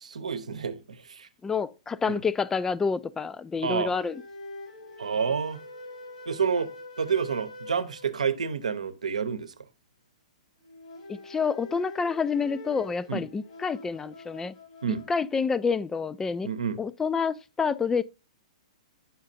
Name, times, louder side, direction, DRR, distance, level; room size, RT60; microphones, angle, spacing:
voice 1, 0.0-1.3 2.1-2.2 3.6-3.9 5.0-5.6 6.3-6.7 7.0-9.5 13.1-13.2 14.8-15.0 16.4-16.8, right 6 dB, 80° right, 0.8 m, -29 dB
voice 2, 1.4-4.2 11.1-14.5 15.1-16.5 16.8-18.0, left 5 dB, 10° left, 0.3 m, -28 dB
sound 1, 3.9-8.7 10.6-15.6, left 2 dB, 70° left, 2.2 m, -45 dB
7.3 x 5.7 x 2.6 m
hypercardioid pair, 120°, 4 cm